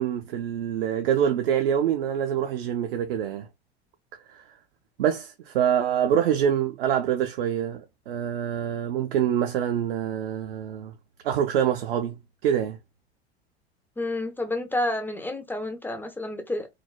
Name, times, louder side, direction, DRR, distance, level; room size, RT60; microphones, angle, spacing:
voice 1, 0.0-3.5 4.3-4.4 5.0-10.9 11.2-12.2 12.4-12.8, right 9 dB, 60° right, 0.5 m, -25 dB
voice 2, 14.0-16.7, left 1 dB, 5° left, 0.3 m, -29 dB
3.2 x 2.0 x 2.3 m
figure-of-eight pair, 80°, 32 cm